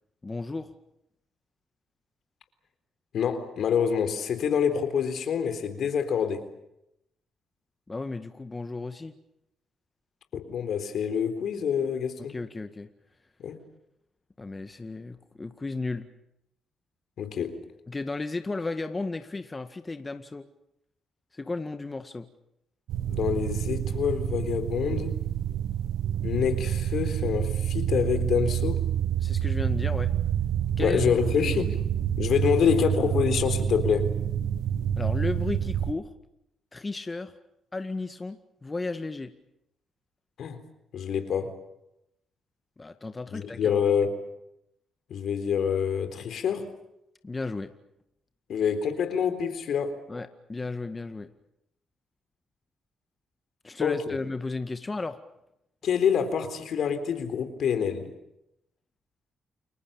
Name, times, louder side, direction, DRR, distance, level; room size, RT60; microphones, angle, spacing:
voice 1, 0.2-0.7 7.9-9.1 12.2-12.9 14.4-16.1 17.9-20.5 21.3-22.3 29.2-30.1 30.8-31.6 35.0-36.1 36.7-37.3 37.7-39.3 42.8-43.7 47.2-47.7 50.1-51.3 53.6-55.2, left 3 dB, 30° left, 8 dB, 1.9 m, -34 dB
voice 2, 3.1-6.4 10.3-12.3 13.4-13.6 17.2-17.6 23.1-25.2 26.2-28.8 30.8-31.8 32.2-34.1 40.4-40.6 40.9-41.6 43.3-44.1 45.1-46.7 48.5-50.0 53.8-54.2 55.8-58.1, left 7 dB, 70° left, 9 dB, 3.8 m, -26 dB
sound 1, 22.9-35.9, right 10 dB, 80° right, 1.1 m, -28 dB
30.0 x 22.0 x 7.2 m, 0.82 s
supercardioid pair, 60°, 0 cm